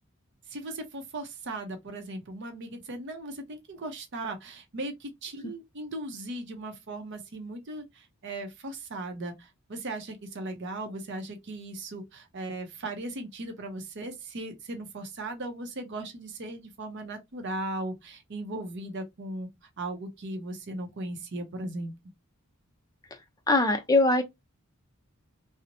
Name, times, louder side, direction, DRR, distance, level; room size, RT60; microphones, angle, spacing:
voice 1, 0.5-19.5 19.8-21.9, right 2 dB, 55° right, 0.6 m, -37 dB
voice 2, 23.5-24.2, left 2 dB, 15° left, 0.4 m, -21 dB
2.9 x 2.0 x 2.5 m
head